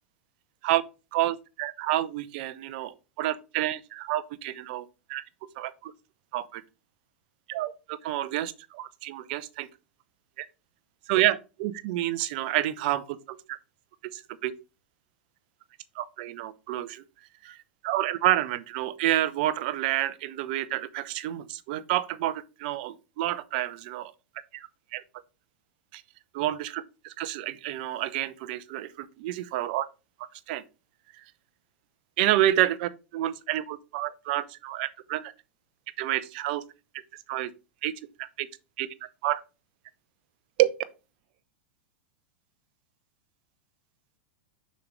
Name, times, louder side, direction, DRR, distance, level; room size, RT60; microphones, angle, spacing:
voice 1, 1.1-5.2 5.6-5.9 6.3-6.6 7.5-9.7 10.4-10.5 11.1-13.6 14.1-14.5 15.9-17.0 17.4-17.6 17.8-24.1 24.5-25.0 25.9-26.0 26.3-29.9 30.5-30.6 31.1-31.2 32.2-35.3 36.0-36.6 37.3-37.5 37.8-37.9 38.2-38.5 38.8-38.9 39.2-39.4 40.6-40.7, right 14 dB, 55° right, 0.7 m, -29 dB
6.6 x 5.2 x 3.2 m
hypercardioid pair, 100°, 6 cm